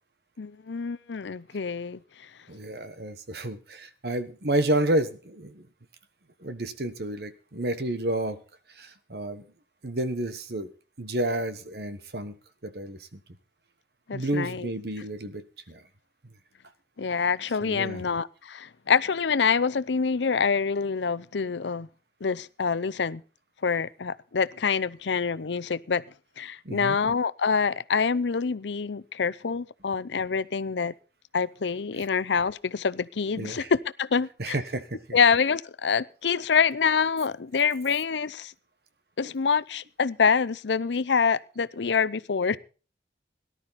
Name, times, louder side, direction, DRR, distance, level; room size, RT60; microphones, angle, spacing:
voice 1, 0.4-2.0 14.1-14.7 17.0-21.9 22.2-23.2 23.6-26.0 26.4-30.9 31.3-34.6 35.1-38.5 39.2-42.6, left 5 dB, 90° left, 18 dB, 0.6 m, -26 dB
voice 2, 2.5-5.7 6.4-8.4 8.7-9.4 9.8-10.7 11.0-12.4 12.6-13.2 14.1-15.8 16.2-16.3 17.6-18.0 26.6-27.0 32.0-32.1 33.4-33.7 34.4-35.2 39.2-39.3, right 1 dB, 65° right, 12 dB, 1.3 m, -30 dB
18.0 x 11.5 x 4.1 m, 0.37 s
head